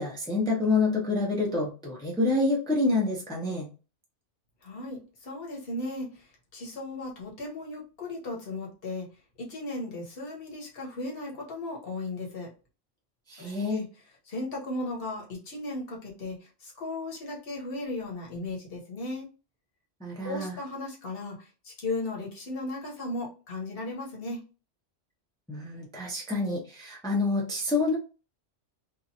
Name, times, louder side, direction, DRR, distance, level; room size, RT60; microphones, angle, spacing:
voice 1, 0.0-3.7 13.3-13.8 20.0-20.5 25.5-28.0, left 3 dB, 5° left, -3 dB, 0.6 m, -27 dB
voice 2, 4.6-6.2 6.5-9.1 9.4-12.5 13.4-13.8 14.3-19.3 20.2-24.4, left 2 dB, 55° left, -2 dB, 1.1 m, -36 dB
2.9 x 2.4 x 2.7 m, 0.33 s
omnidirectional pair, 1.2 m